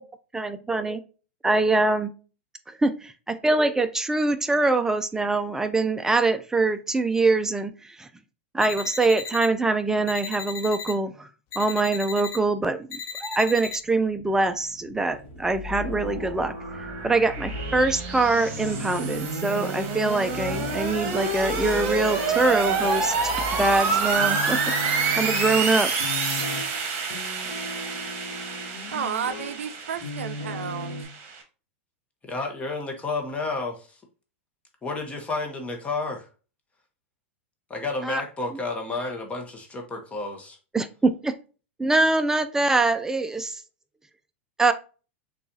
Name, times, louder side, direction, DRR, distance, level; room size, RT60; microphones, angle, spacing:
voice 1, 0.3-1.0 1.4-2.1 2.8-8.1 8.5-11.3 11.6-16.5 17.0-23.3 23.6-24.6 25.2-25.9 38.0-38.2 40.7-41.3 41.8-43.6 44.6-44.7, right 3 dB, 5° right, 0.4 m, -24 dB
sound 1, 8.6-9.5 10.1-10.9 11.5-12.4 12.9-13.8, left 6 dB, 45° left, 0.9 m, -36 dB
sound 2, 15.1-31.0, left 2 dB, 80° left, 1.0 m, -37 dB
sound 3, 15.4-31.4, right 4 dB, 45° right, 1.3 m, -28 dB
voice 2, 28.9-31.1, right 8 dB, 90° right, 0.4 m, -32 dB
voice 3, 32.2-34.0 34.8-36.3 37.7-40.6, left 3 dB, 20° left, 0.9 m, -31 dB
6.5 x 2.4 x 2.6 m
hypercardioid pair, 120°, 7 cm